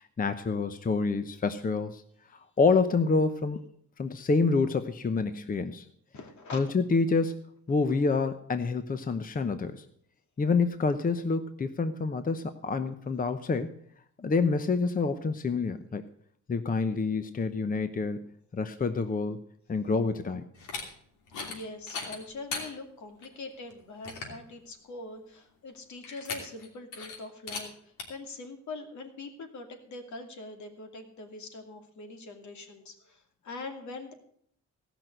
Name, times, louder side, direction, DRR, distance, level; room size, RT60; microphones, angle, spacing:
voice 1, 0.0-2.0 2.3-3.6 4.0-5.9 6.5-7.4 7.7-9.8 10.4-13.7 14.2-16.0 16.5-20.5, left 4 dB, 30° left, 10 dB, 0.9 m, -28 dB
voice 2, 6.1-6.7 21.4-34.1, left 3 dB, 70° left, 6 dB, 2.6 m, -43 dB
sound 1, 20.5-20.8 21.3-21.6 21.9-22.7 23.2-23.3 23.7-23.8 24.0-24.4 26.0-26.7 26.9-27.2 27.5-27.6 28.0-28.1, left 4 dB, 85° left, 3.0 m, -37 dB
17.5 x 6.1 x 7.9 m, 0.65 s
cardioid pair, 90°, 30 cm